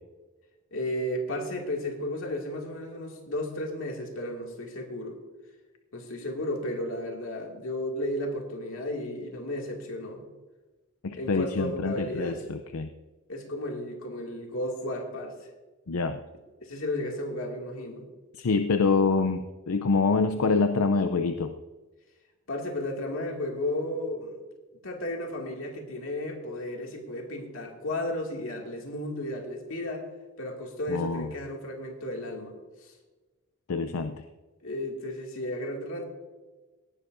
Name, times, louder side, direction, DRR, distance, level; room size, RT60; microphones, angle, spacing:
voice 1, 0.7-5.2 5.9-10.2 11.1-12.4 13.3-15.3 16.6-18.1 22.5-24.4 24.8-30.1 30.4-32.5 32.8-32.9 34.6-36.0, left 1 dB, 70° left, 1 dB, 2.3 m, -33 dB
voice 2, 11.0-12.9 15.9-16.2 18.3-21.5 30.9-31.3 33.7-34.2, left 4 dB, 90° left, 9 dB, 0.6 m, -26 dB
18.0 x 11.0 x 2.6 m, 1.2 s
head